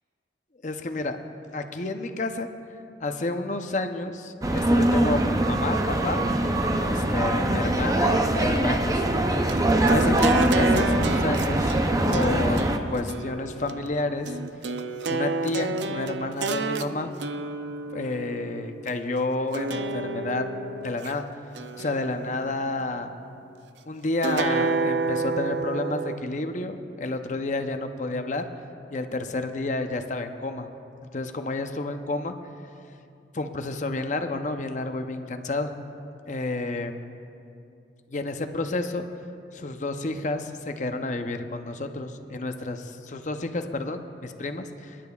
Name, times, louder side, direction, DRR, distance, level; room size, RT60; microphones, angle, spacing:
voice 1, 0.6-1.2 1.5-2.5 3.0-6.3 6.8-11.8 12.1-14.3 15.1-17.1 17.9-20.5 20.8-21.2 21.8-23.1 23.9-28.4 28.9-30.7 31.1-32.3 33.3-35.7 36.3-37.0 38.1-39.1 39.5-45.0, left 2 dB, 45° left, 7 dB, 0.6 m, -30 dB
sound 1, 4.4-12.8, right 1 dB, 20° right, 0.5 m, -22 dB
sound 2, 9.5-18.9 19.5-21.1 21.6-22.7 24.2-26.2, right 4 dB, 80° right, 0.5 m, -30 dB
28.0 x 10.0 x 2.4 m, 2.5 s
head